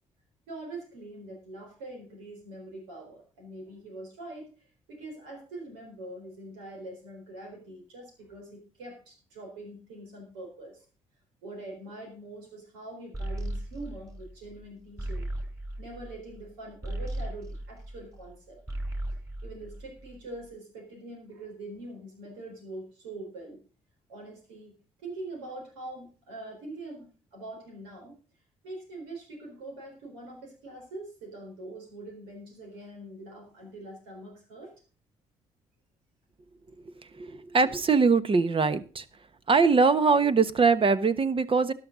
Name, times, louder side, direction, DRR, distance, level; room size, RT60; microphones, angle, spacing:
voice 1, 0.5-10.8 11.4-15.3 15.8-18.6 19.4-23.6 24.1-24.7 25.0-28.1 28.6-34.7, right 2 dB, 85° right, 0 dB, 4.1 m, -43 dB
sound 1, 13.1-18.3 18.6-20.3, right 1 dB, 20° right, 6.4 m, -36 dB
voice 2, 37.2-39.0 39.5-41.7, right 4 dB, 40° right, 13 dB, 1.3 m, -22 dB
13.0 x 11.5 x 3.9 m, 0.35 s
hypercardioid pair, 50°, 15 cm